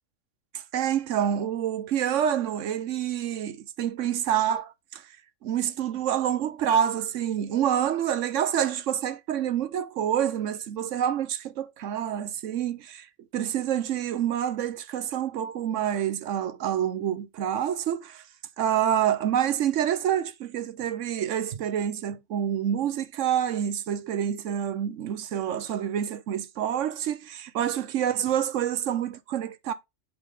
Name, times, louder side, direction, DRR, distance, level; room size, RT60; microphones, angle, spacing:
voice 1, 0.5-5.0 5.4-13.1 13.3-18.2 18.6-29.7, right 9 dB, 70° right, 1.1 m, -27 dB
8.4 x 4.8 x 3.6 m
omnidirectional pair, 1.3 m